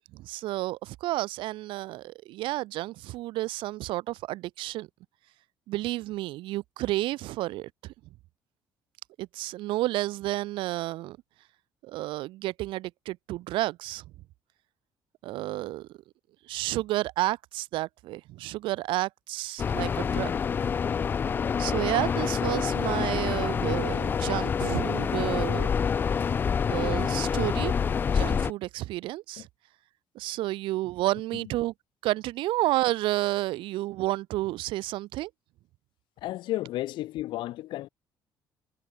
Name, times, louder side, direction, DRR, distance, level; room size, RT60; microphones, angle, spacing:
voice 1, 0.1-4.9 5.7-7.9 9.2-11.2 11.8-14.0 15.2-15.9 16.5-20.3 21.6-25.7 26.7-29.5 30.1-31.7 32.0-35.3, right 17 dB, 80° right, 1.1 m, -31 dB
sound 1, 19.6-28.5, left 6 dB, 25° left, 0.4 m, -27 dB
voice 2, 36.2-37.9, left 15 dB, 70° left, 1.1 m, -33 dB
cardioid pair, 170°, 8 cm